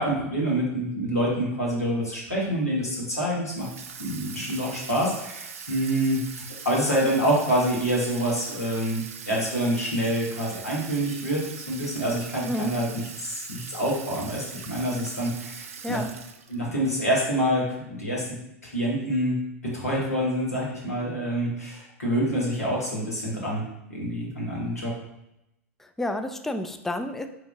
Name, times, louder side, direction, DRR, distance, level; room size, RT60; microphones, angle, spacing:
voice 1, 0.0-3.7 4.0-6.2 6.6-12.9 13.2-16.0 16.5-19.4 19.6-23.6 23.9-24.9, equal, 85° left, -4 dB, 1.5 m, -26 dB
Water tap faucet / Sink (filling or washing), 3.6-16.7, right 6 dB, 70° right, 0.5 m, -41 dB
voice 2, 12.5-12.8 15.8-16.1 25.8-27.3, left 1 dB, 5° left, 7 dB, 0.3 m, -30 dB
4.5 x 3.4 x 2.7 m, 0.86 s
figure-of-eight pair, 90°, 8 cm